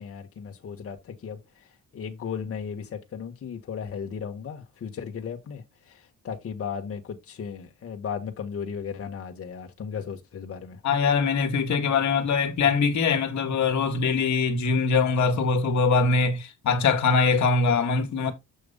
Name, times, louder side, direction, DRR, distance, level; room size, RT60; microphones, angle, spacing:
voice 1, 0.0-10.8, left 7 dB, 50° left, 1.6 m, -36 dB
voice 2, 10.8-18.3, left 4 dB, 70° left, 1.7 m, -22 dB
7.8 x 3.0 x 5.5 m
cardioid pair, 90°, 30 cm